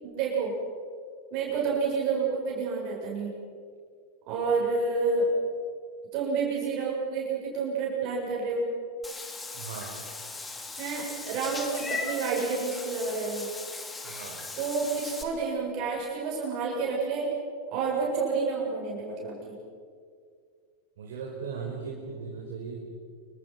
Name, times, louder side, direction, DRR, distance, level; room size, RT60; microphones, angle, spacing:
voice 1, 0.0-0.5 1.3-3.3 4.3-5.3 6.1-8.6 10.8-13.5 14.6-17.3 17.7-19.6, right 4 dB, 40° right, -2 dB, 7.5 m, -29 dB
Meow / Water / Bathtub (filling or washing), 9.0-15.2, left 3 dB, 10° left, 3.0 m, -38 dB
voice 2, 9.5-10.0 14.0-14.5 21.0-22.9, right 5 dB, 55° right, -2 dB, 4.9 m, -38 dB
28.5 x 25.0 x 6.0 m, 2.1 s
figure-of-eight pair, 90°, 0 cm